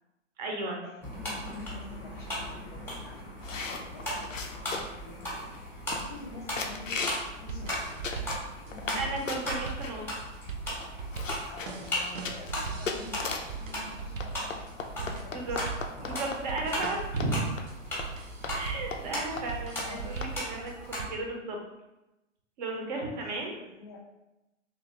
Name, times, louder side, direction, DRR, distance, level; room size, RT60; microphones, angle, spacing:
voice 1, 0.4-0.8 8.9-10.0 15.3-15.6 16.0-17.4 18.5-21.6 22.6-23.6, right 2 dB, 35° right, 1 dB, 0.7 m, -34 dB
sound 1, 1.0-21.0, equal, 5° left, 0.8 m, -38 dB
voice 2, 1.5-4.3 4.7-5.4 5.7-7.0 7.4-8.4 8.7-9.8 11.3-15.6 16.9-17.0 17.3-17.5 17.8-17.9 19.3-20.1 23.0-24.0, left 3 dB, 20° left, -1 dB, 0.4 m, -48 dB
sound 2, 3.4-5.1 5.5-5.6 5.9-6.3 6.6-7.3 7.7-9.0 9.3-9.9 10.5-10.6 10.8-13.6 14.2-16.9 17.2-17.3 17.6-17.7 18.0-18.1 18.4-18.6 18.9-19.1 19.4-19.5 19.8-19.9 20.2-20.3, left 4 dB, 80° left, 0.5 m, -37 dB
sound 3, 7.1-21.1, right 5 dB, 85° right, 0.5 m, -40 dB
3.0 x 2.5 x 2.8 m, 0.96 s
figure-of-eight pair, 115°, 38 cm